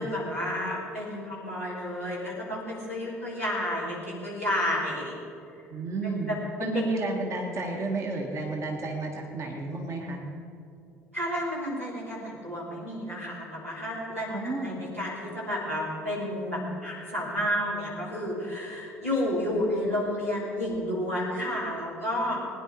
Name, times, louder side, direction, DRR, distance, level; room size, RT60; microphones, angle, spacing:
voice 1, 0.0-5.2 6.0-6.8 11.1-22.4, left 1 dB, 85° right, -6 dB, 3.4 m, -31 dB
voice 2, 5.7-6.3 6.6-10.2 14.3-14.8, right 3 dB, 40° right, 0 dB, 1.9 m, -32 dB
21.0 x 10.0 x 4.5 m, 2.6 s
figure-of-eight pair, 55°, 7 cm